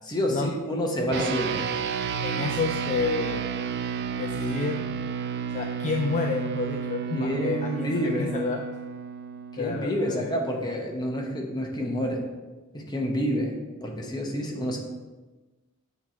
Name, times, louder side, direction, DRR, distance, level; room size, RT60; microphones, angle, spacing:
voice 1, 0.1-1.6 7.1-8.5 9.6-12.2 12.7-14.8, equal, 20° left, 0 dB, 0.9 m, -28 dB
sound 1, 1.1-10.8, right 6 dB, 50° right, 0.3 m, -32 dB
voice 2, 2.2-3.5 4.2-4.8 5.5-7.9 8.2-8.6 9.6-10.3, left 4 dB, 35° left, 3 dB, 0.4 m, -30 dB
7.8 x 3.1 x 4.3 m, 1.2 s
head